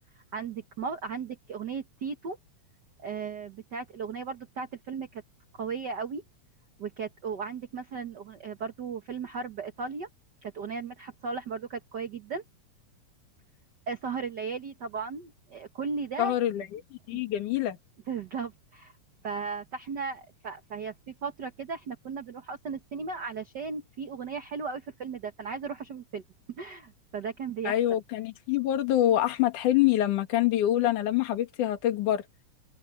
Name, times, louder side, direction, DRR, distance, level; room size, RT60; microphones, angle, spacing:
voice 1, 0.3-2.4 3.0-5.2 5.5-6.2 6.8-10.1 10.4-12.4 13.9-16.3 17.1-17.3 18.1-18.9 19.2-26.2 26.6-27.7, right 5 dB, 70° right, 0.9 m, -36 dB
voice 2, 16.2-17.8 27.7-32.3, left 13 dB, 65° left, 3.3 m, -26 dB
open air
omnidirectional pair, 3.9 m